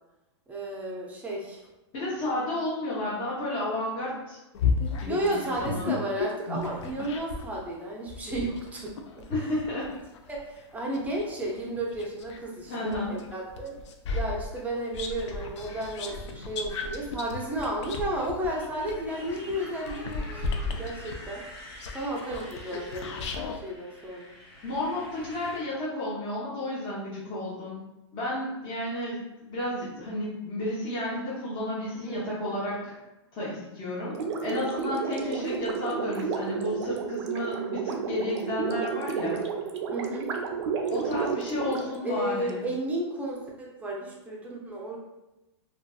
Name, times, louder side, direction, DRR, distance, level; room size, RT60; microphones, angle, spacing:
voice 1, 0.5-1.6 5.1-9.2 10.3-13.8 14.1-20.5 20.7-21.4 21.9-23.3 23.6-24.3 32.0-32.6 35.1-35.3 39.9-40.3 42.0-45.0, right 1 dB, 10° right, -3 dB, 0.5 m, -33 dB
voice 2, 1.9-4.4 4.9-6.0 9.3-9.9 12.7-13.1 24.6-27.9 28.1-29.2 29.5-32.9 33.3-34.2 34.4-39.4 40.9-42.6, left 1 dB, 35° left, -8 dB, 0.8 m, -32 dB
sound 1, 4.5-7.5 8.1-12.4 12.9-23.6, left 4 dB, 80° left, 0.4 m, -34 dB
Motorcycle, 19.1-25.6, left 1 dB, 65° left, 1.4 m, -46 dB
Gurgling, 34.1-42.5, right 6 dB, 75° right, 0.4 m, -32 dB
2.4 x 2.3 x 2.3 m, 0.97 s
hypercardioid pair, 135°, 15 cm